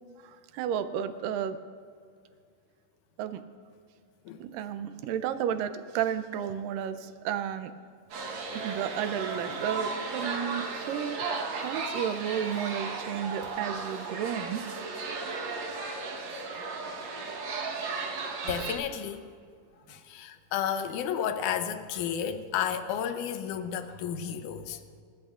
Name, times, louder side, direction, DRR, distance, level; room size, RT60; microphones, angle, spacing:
voice 1, 0.2-1.6 3.2-3.4 4.4-7.7 8.5-11.2 11.5-14.6 17.9-18.2, right 9 dB, 80° right, 10 dB, 2.2 m, -32 dB
sound 1, 8.1-18.7, right 4 dB, 60° right, 2.1 m, -35 dB
voice 2, 18.4-19.2 19.9-24.8, left 8 dB, 75° left, 9 dB, 2.0 m, -32 dB
28.0 x 13.5 x 2.5 m, 2.1 s
omnidirectional pair, 4.2 m